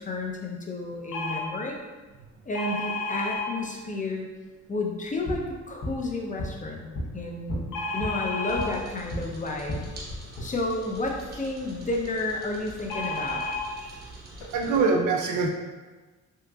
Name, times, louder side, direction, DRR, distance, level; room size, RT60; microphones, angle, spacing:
voice 1, 0.0-1.8 2.4-4.3 4.7-6.9 7.1-9.9 10.4-13.4, left 2 dB, 25° left, 1 dB, 0.6 m, -31 dB
sound 1, 1.1-1.4 2.5-3.4 7.7-8.6 12.9-13.6 14.4-14.5 14.7-14.9, left 2 dB, 85° left, 0.6 m, -31 dB
sound 2, 5.0-9.3 9.6-10.4, left 1 dB, 65° left, 1.1 m, -35 dB
sound 3, 8.4-14.8, right 1 dB, 35° right, 1.0 m, -45 dB
voice 2, 13.8-15.5, right 4 dB, 80° right, 2 dB, 0.5 m, -26 dB
3.6 x 2.9 x 2.3 m, 1.3 s
cardioid pair, 90°, 30 cm